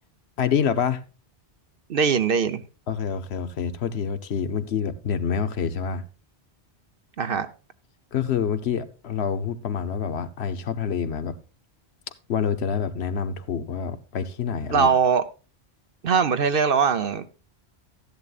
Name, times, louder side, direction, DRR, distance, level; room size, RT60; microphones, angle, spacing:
voice 1, 0.4-1.0 2.9-6.0 8.1-11.4 12.3-14.9, left 7 dB, 80° left, 1.2 m, -27 dB
voice 2, 1.9-2.6 7.2-7.5 14.7-15.2 16.0-17.3, right 6 dB, 60° right, 1.0 m, -21 dB
13.5 x 10.5 x 2.4 m
omnidirectional pair, 1.1 m